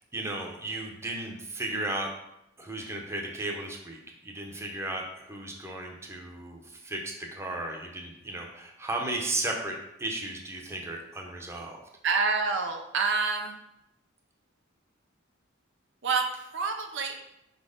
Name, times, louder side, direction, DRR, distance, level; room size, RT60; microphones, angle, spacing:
voice 1, 0.0-2.1 2.6-11.8, right 2 dB, 15° right, 0 dB, 0.8 m, -35 dB
voice 2, 12.0-13.6 16.0-17.1, right 4 dB, 60° right, 4 dB, 0.5 m, -27 dB
4.7 x 4.2 x 5.0 m, 0.85 s
head